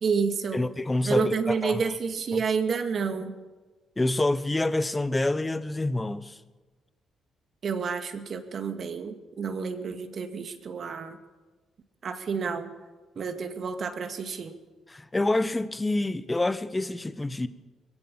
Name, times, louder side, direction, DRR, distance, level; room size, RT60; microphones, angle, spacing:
voice 1, 0.0-0.6 1.0-3.3 7.6-11.2 12.0-12.7 13.2-14.5, right 5 dB, 50° right, 2.2 m, -29 dB
voice 2, 0.5-1.9 2.3-2.4 4.0-6.4 14.9-17.5, left 2 dB, 15° left, 1.1 m, -27 dB
21.5 x 17.0 x 7.4 m
cardioid pair, 90°, 0 cm